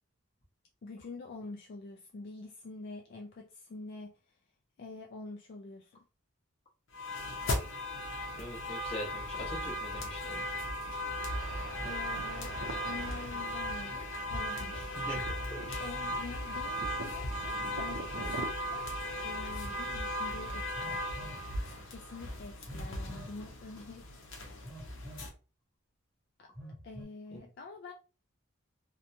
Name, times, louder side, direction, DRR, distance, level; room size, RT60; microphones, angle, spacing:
voice 1, 0.8-4.2 4.8-6.0 11.8-14.9 15.8-18.9 19.2-21.2 21.9-24.3 26.4-26.5 26.8-27.9, left 3 dB, 50° left, 0.3 m, -46 dB
sound 1, 6.9-25.3, left 1 dB, 70° left, 0.8 m, -37 dB
voice 2, 8.3-10.4 14.7-15.2 15.5-15.8, equal, 25° left, 1.1 m, -42 dB
sound 2, 11.3-18.5, right 2 dB, 65° right, 0.5 m, -46 dB
Telephone, 20.7-21.5 22.7-23.4 24.6-25.3 26.5-27.0, equal, 5° right, 0.7 m, -47 dB
2.8 x 2.1 x 2.6 m
head